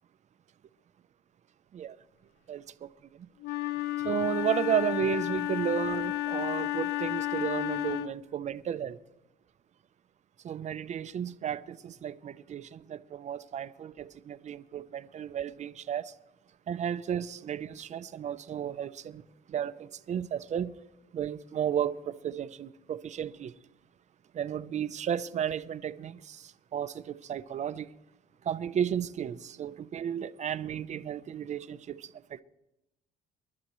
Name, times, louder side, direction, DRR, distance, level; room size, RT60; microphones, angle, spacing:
voice 1, 2.5-3.3 4.0-9.0 10.4-16.1 16.7-19.2 19.5-20.7 21.1-23.5 24.3-27.9 28.4-32.4, right 9 dB, 45° right, 0.7 m, -33 dB
Wind instrument woodwind instrument, 3.4-8.3, left 16 dB, 75° left, 0.5 m, -32 dB
26.0 x 12.0 x 3.1 m
cardioid pair, 110°, 17 cm